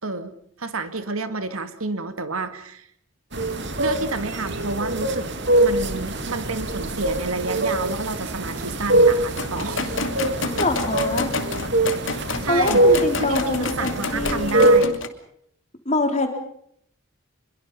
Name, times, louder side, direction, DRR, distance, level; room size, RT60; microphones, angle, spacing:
voice 1, 0.0-2.9 3.8-5.3 5.6-10.1 12.4-15.0, right 3 dB, 90° right, 9 dB, 2.3 m, -29 dB
sound 1, 3.3-14.8, right 1 dB, 55° right, 2.5 m, -23 dB
sound 2, 9.4-15.1, left 3 dB, 65° left, 2.5 m, -29 dB
voice 2, 10.6-11.3 12.5-14.7 15.9-16.3, left 2 dB, 30° left, 4 dB, 3.9 m, -24 dB
27.0 x 22.5 x 5.6 m, 0.70 s
head